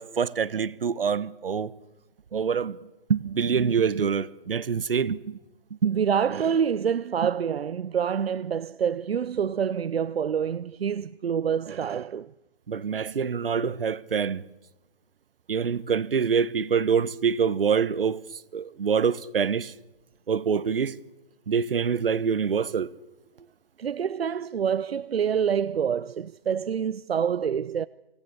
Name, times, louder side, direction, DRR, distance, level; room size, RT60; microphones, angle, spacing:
voice 1, 0.0-1.7 2.3-2.8 3.1-5.4 5.8-6.1 12.7-14.4 15.5-18.2 18.5-19.7 20.3-21.0 21.5-22.9, right 6 dB, 70° right, 1.3 m, -25 dB
voice 2, 5.8-12.3 23.8-27.9, right 7 dB, 85° right, 0.7 m, -27 dB
25.5 x 18.0 x 7.0 m
hypercardioid pair, 165°, 30 cm